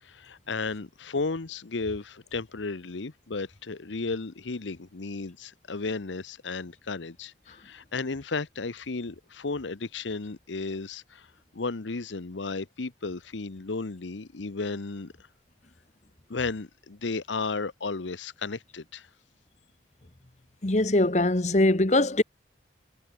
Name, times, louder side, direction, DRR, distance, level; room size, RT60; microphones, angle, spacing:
voice 1, 0.0-11.3 11.5-15.1 16.3-19.1, left 3 dB, 90° left, 0.9 m, -34 dB
voice 2, 20.6-22.2, left 2 dB, 40° left, 1.2 m, -22 dB
head